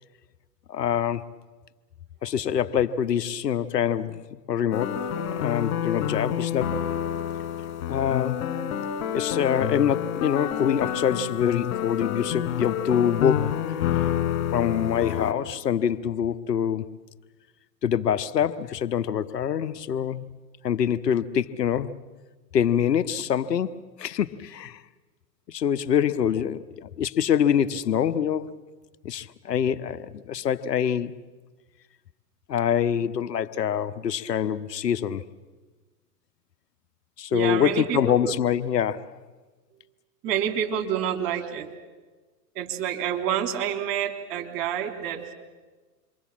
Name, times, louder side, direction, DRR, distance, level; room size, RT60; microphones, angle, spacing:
voice 1, 0.7-1.2 2.2-6.7 7.9-8.5 9.1-13.5 13.9-14.1 14.5-16.9 17.8-20.3 20.6-21.9 22.5-24.8 25.5-28.5 29.0-31.1 32.5-35.2 37.2-39.1, left 9 dB, 85° left, 1.1 m, -25 dB
sound 1, 4.7-15.3, left 10 dB, 60° left, 3.3 m, -28 dB
voice 2, 37.3-38.3 40.2-41.7 42.6-45.3, right 9 dB, 45° right, 3.4 m, -28 dB
27.5 x 23.5 x 7.4 m
hypercardioid pair, 105°, 47 cm